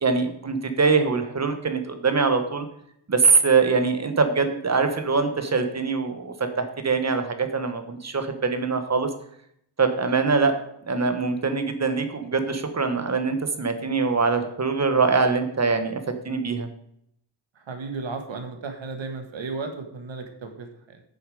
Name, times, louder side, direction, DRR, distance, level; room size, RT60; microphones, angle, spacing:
voice 1, 0.0-2.6 3.1-9.1 9.8-16.7, right 4 dB, 30° right, 8 dB, 1.2 m, -23 dB
voice 2, 17.5-21.0, right 4 dB, 65° right, 6 dB, 1.7 m, -34 dB
8.9 x 7.1 x 4.9 m, 0.72 s
wide cardioid pair, 130°, 49 cm